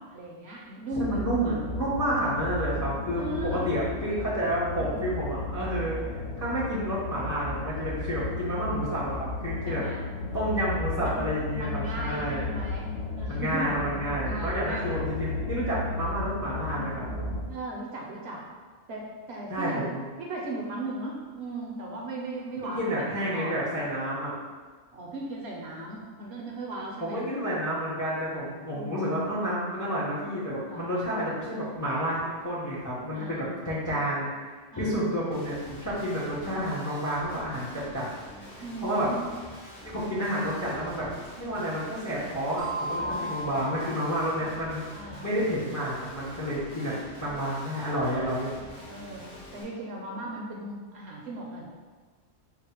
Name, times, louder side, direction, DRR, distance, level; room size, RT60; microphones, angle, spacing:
voice 1, 0.0-1.6 3.1-3.7 4.8-5.1 9.7-10.0 11.0-12.9 13.2-13.7 14.0-14.8 17.5-18.4 18.9-19.9 20.2-23.1 23.3-23.7 24.9-27.3 28.7-29.0 30.7-30.9 33.1-33.6 34.7-35.1 38.6-39.3 42.9-43.7 44.9-45.3 48.5-51.7, right 1 dB, 60° right, -2 dB, 0.8 m, -37 dB
sound 1, 0.9-17.4, left 2 dB, 90° left, 1.1 m, -34 dB
voice 2, 1.0-9.8 10.3-12.4 13.3-17.0 19.5-20.1 22.7-24.3 27.0-38.1 38.8-39.1 39.8-44.9 45.2-46.9 47.2-48.5, equal, 20° left, -7 dB, 0.5 m, -30 dB
Guitar, 35.3-49.6, left 1 dB, 60° left, 1.4 m, -46 dB
sound 2, 42.6-45.1, right 1 dB, 40° right, 0.4 m, -36 dB
3.9 x 2.1 x 4.2 m, 1.4 s
omnidirectional pair, 1.3 m